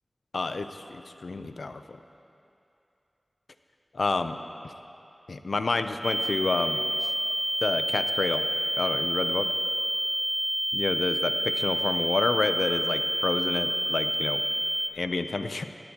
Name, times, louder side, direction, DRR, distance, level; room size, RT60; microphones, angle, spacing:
voice 1, 0.3-2.0 3.9-4.7 5.3-6.8 7.6-8.5 8.8-9.5 10.7-14.4 14.9-15.6, left 3 dB, 75° left, 9 dB, 0.5 m, -29 dB
sound 1, 6.0-14.9, right 1 dB, 20° right, 1.1 m, -28 dB
18.0 x 13.0 x 2.9 m, 2.7 s
wide cardioid pair, 70°, 0 cm